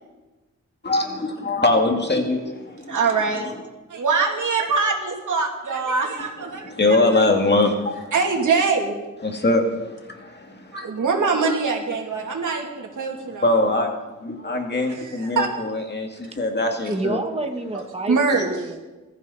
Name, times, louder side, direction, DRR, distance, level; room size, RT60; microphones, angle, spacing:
voice 1, 0.8-3.0 3.3-3.6 6.2-8.1 9.2-11.0 13.4-13.9 14.2-17.2, left 2 dB, 35° left, 3 dB, 2.1 m, -23 dB
voice 2, 2.9-3.5 3.9-7.0 8.1-8.9 10.7-13.6 14.9-15.5 18.1-18.5, right 4 dB, 90° right, 0 dB, 3.0 m, -23 dB
voice 3, 16.9-18.8, right 2 dB, 20° right, 3 dB, 1.7 m, -28 dB
21.0 x 14.0 x 4.2 m, 1.1 s
wide cardioid pair, 105°, 30 cm